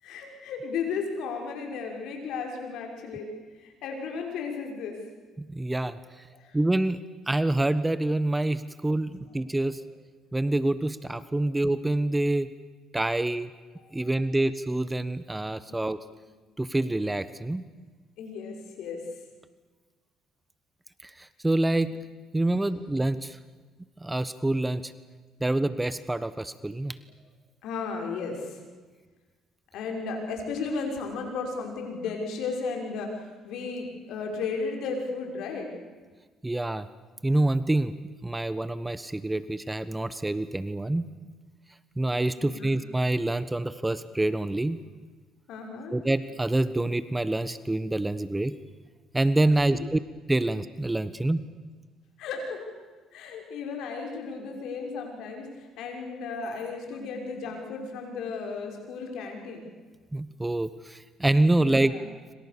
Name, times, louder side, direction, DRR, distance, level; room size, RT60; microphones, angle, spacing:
voice 1, 0.0-3.3 3.6-5.0 6.3-6.6 9.1-9.3 13.8-14.1 15.7-15.8 18.2-19.0 27.6-28.6 29.7-35.7 42.4-42.8 45.5-46.0 49.7-49.9 52.2-52.7 53.1-59.7 61.5-62.0, left 4 dB, 70° left, 2 dB, 6.1 m, -34 dB
voice 2, 5.4-6.0 6.5-9.8 10.3-12.5 12.9-13.5 13.9-16.0 16.6-17.6 21.0-21.9 22.3-23.4 24.0-24.9 25.4-27.0 36.4-36.9 37.2-37.9 38.2-41.1 42.0-44.8 45.9-48.5 49.1-50.0 50.3-51.4 60.1-61.9, right 2 dB, 15° right, 14 dB, 1.3 m, -26 dB
27.5 x 26.0 x 7.0 m, 1.4 s
supercardioid pair, 65°, 0 cm